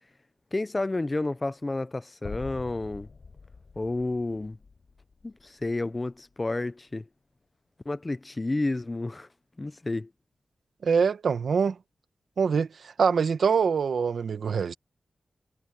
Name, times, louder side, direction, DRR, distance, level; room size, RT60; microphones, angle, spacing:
voice 1, 0.5-3.1 3.8-4.6 5.2-7.1 7.9-9.3 9.6-10.1, left 2 dB, 25° left, 0.7 m, -30 dB
sound 1, 2.2-6.4, left 4 dB, 50° left, 5.7 m, -45 dB
voice 2, 10.8-11.8 12.4-12.7 13.0-14.7, right 6 dB, 80° right, 1.1 m, -24 dB
wide cardioid pair, 135°, 0 cm